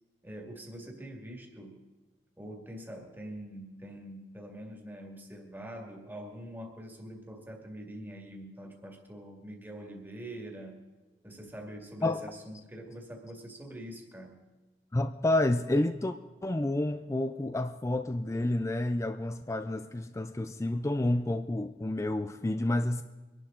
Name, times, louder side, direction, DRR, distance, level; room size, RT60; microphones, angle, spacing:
voice 1, 0.2-1.8 2.4-10.8 11.2-14.4, right 1 dB, 10° right, 1 dB, 2.1 m, -44 dB
voice 2, 14.9-16.1 16.4-23.0, left 1 dB, 15° left, 8 dB, 0.4 m, -29 dB
23.5 x 11.5 x 3.8 m, 1.2 s
head